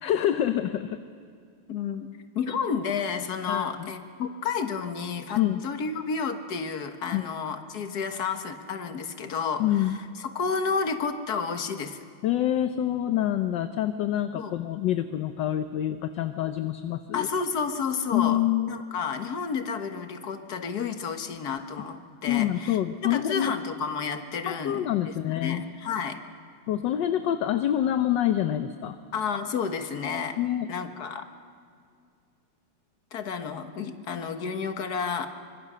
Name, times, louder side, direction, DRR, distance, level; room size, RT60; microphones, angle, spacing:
voice 1, 0.0-1.0 3.5-3.9 5.3-5.6 7.1-7.3 9.6-10.0 12.2-17.3 18.1-18.8 22.3-23.5 24.5-25.6 26.7-29.0 30.4-30.7, left 12 dB, 65° left, 9 dB, 1.3 m, -26 dB
voice 2, 1.7-2.1 2.3-12.0 14.3-14.6 17.1-26.2 29.1-30.4 30.7-31.3 33.1-35.3, left 5 dB, 50° left, 7 dB, 1.7 m, -31 dB
24.5 x 24.5 x 6.7 m, 2.3 s
omnidirectional pair, 2.4 m